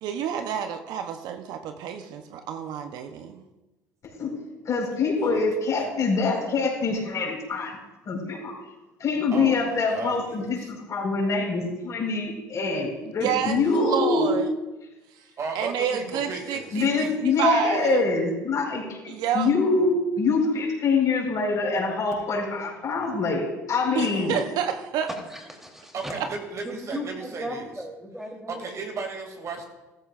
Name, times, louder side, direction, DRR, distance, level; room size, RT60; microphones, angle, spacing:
voice 1, 0.0-3.4 13.2-14.5 15.5-17.1 17.4-18.1 19.1-19.5 23.9-25.1 26.2-26.3, right 8 dB, 65° right, 7 dB, 0.9 m, -29 dB
voice 2, 4.6-7.8 8.1-8.5 9.0-14.3 16.7-24.3, left 4 dB, 45° left, -1 dB, 4.8 m, -25 dB
voice 3, 9.3-10.7 15.4-17.3 25.9-27.7 28.5-29.7, right 4 dB, 45° right, 3 dB, 2.5 m, -35 dB
voice 4, 25.2-26.1 26.6-28.7, equal, 5° right, 1 dB, 3.3 m, -37 dB
14.5 x 14.0 x 2.5 m, 1.1 s
hypercardioid pair, 75°, 7 cm